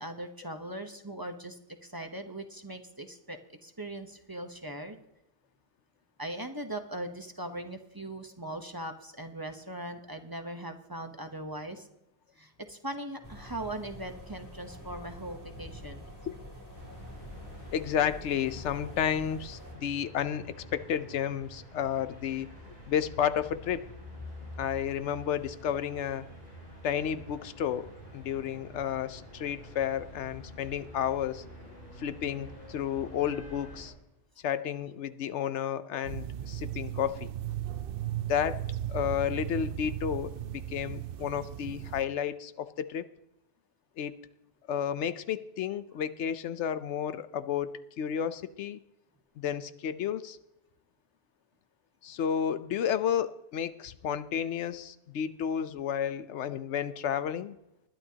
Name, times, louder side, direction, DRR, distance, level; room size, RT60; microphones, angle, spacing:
voice 1, 0.0-5.0 6.2-11.9 12.4-16.0, right 1 dB, 20° right, 5 dB, 0.9 m, -40 dB
sound 1, 13.2-19.7, left 1 dB, 15° left, 3.2 m, -46 dB
sound 2, 16.7-33.9, left 1 dB, 50° left, 4.4 m, -48 dB
voice 2, 17.7-22.5 22.9-23.9 24.6-26.3 26.8-31.4 32.0-33.9 34.4-37.3 38.3-38.6 38.9-40.3 40.7-43.1 44.0-44.2 44.7-48.8 49.4-50.4 52.0-57.5, left 9 dB, 85° left, 13 dB, 1.0 m, -32 dB
sound 3, 36.0-42.0, right 11 dB, 65° right, 0.7 m, -36 dB
20.5 x 11.0 x 2.8 m, 0.86 s
omnidirectional pair, 1.2 m